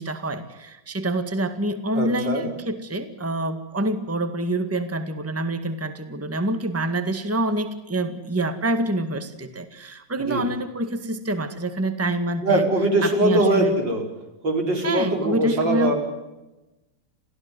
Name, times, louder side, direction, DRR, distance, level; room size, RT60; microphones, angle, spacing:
voice 1, 0.0-12.6 13.0-13.7 14.8-15.9, right 1 dB, 10° right, 9 dB, 1.7 m, -26 dB
voice 2, 1.9-2.5 10.2-10.5 12.4-14.0 14.4-16.0, right 1 dB, 80° right, 2 dB, 5.8 m, -22 dB
27.5 x 16.5 x 9.6 m, 1.0 s
omnidirectional pair, 2.0 m